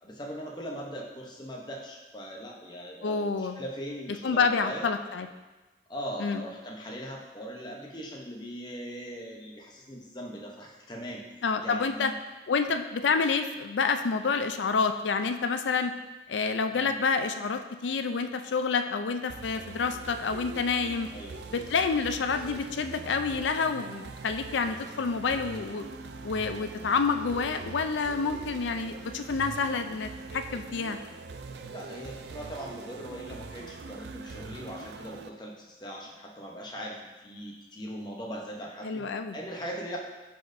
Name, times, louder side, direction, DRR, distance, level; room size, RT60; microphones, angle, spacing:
voice 1, 0.0-4.9 5.9-11.2 11.6-12.2 16.7-17.0 21.1-21.4 31.6-39.1 39.3-40.0, equal, 25° left, -1 dB, 0.8 m, -40 dB
voice 2, 3.0-3.6 4.2-5.3 6.2-6.4 11.4-12.1 12.5-15.9 16.3-21.1 21.5-25.9 26.2-31.0 38.8-39.4, left 5 dB, 85° left, 8 dB, 0.4 m, -28 dB
sound 1, 19.3-35.3, right 4 dB, 65° right, 0.4 m, -43 dB
11.0 x 4.3 x 2.6 m, 1.2 s
head